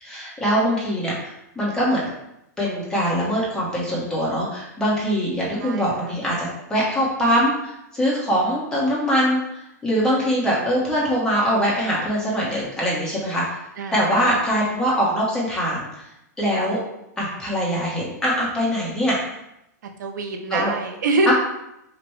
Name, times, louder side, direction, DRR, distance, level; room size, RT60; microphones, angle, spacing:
voice 1, 0.0-2.0 2.6-13.6 13.9-16.1 16.4-16.8 17.2-19.2 20.5-20.7 21.3-21.4, equal, 5° left, -6 dB, 1.1 m, -23 dB
voice 2, 5.6-6.2 13.8-14.5 20.0-21.3, right 2 dB, 85° right, 4 dB, 0.7 m, -25 dB
4.8 x 2.2 x 3.1 m, 0.86 s
hypercardioid pair, 145°, 10 cm